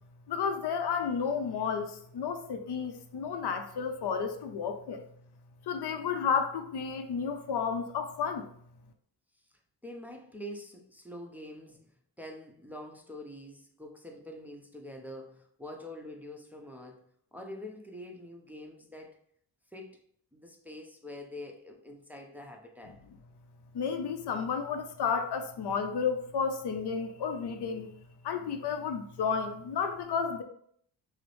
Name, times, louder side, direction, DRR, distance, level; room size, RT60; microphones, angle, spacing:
voice 1, 0.3-5.0 5.7-8.5 23.7-27.9 28.2-30.4, left 6 dB, 60° left, 7 dB, 0.6 m, -32 dB
voice 2, 9.8-17.0 17.3-19.1 19.7-20.0 20.3-23.0, left 1 dB, 5° right, 1 dB, 0.7 m, -45 dB
5.9 x 2.0 x 3.1 m, 0.65 s
cardioid pair, 65°, 46 cm